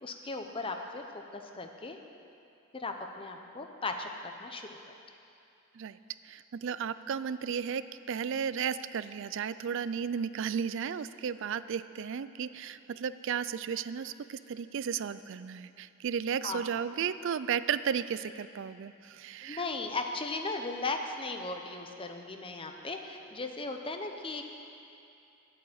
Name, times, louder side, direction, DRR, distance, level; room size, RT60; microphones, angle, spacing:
voice 1, 0.0-2.0 2.7-4.7 16.4-16.6 19.4-24.5, left 3 dB, 25° left, 4 dB, 0.7 m, -37 dB
voice 2, 6.2-19.6, right 7 dB, 60° right, 15 dB, 0.4 m, -34 dB
11.0 x 8.6 x 7.9 m, 2.6 s
head